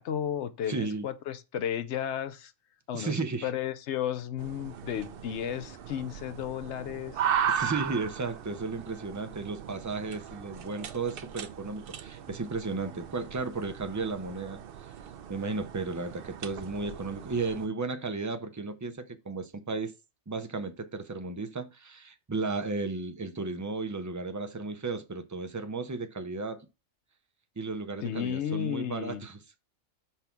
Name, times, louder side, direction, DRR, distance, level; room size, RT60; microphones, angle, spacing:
voice 1, 0.0-2.5 2.9-7.2 28.0-29.2, left 9 dB, 65° left, 0.9 m, -33 dB
voice 2, 0.7-1.1 2.9-3.5 7.5-14.6 15.3-19.9 20.3-26.7 27.6-29.4, right 3 dB, 25° right, 0.4 m, -34 dB
sound 1, 4.4-17.7, right 8 dB, 60° right, 0.7 m, -37 dB
5.8 x 3.6 x 5.8 m
omnidirectional pair, 1.4 m